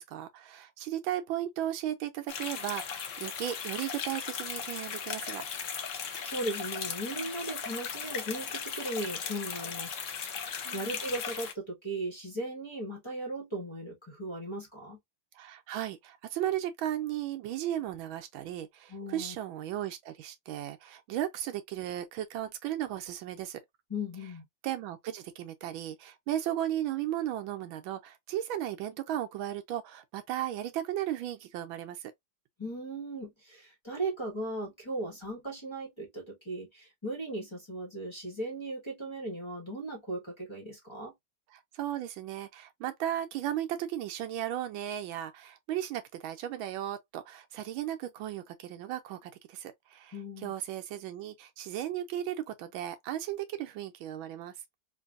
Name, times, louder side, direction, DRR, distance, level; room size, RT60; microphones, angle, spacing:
voice 1, 0.0-5.4 10.6-11.0 15.3-23.6 24.6-32.1 41.5-50.2 50.4-54.5, right 12 dB, 80° right, 1.3 m, -35 dB
sound 1, 2.3-11.5, left 7 dB, 80° left, 0.6 m, -37 dB
voice 2, 6.0-15.0 18.9-19.3 23.9-24.4 32.6-41.1 50.1-50.5, right 1 dB, 15° left, 1.2 m, -37 dB
3.9 x 2.6 x 2.5 m
omnidirectional pair, 2.2 m